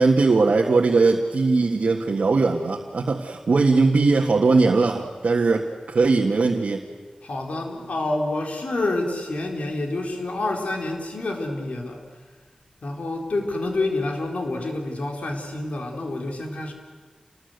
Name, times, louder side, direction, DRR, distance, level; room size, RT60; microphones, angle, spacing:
voice 1, 0.0-6.8, right 3 dB, 80° right, 1 dB, 1.7 m, -20 dB
voice 2, 7.2-12.0 12.8-16.7, left 2 dB, 75° left, 2 dB, 4.2 m, -28 dB
28.5 x 20.5 x 8.1 m, 1.5 s
wide cardioid pair, 85°, 2 cm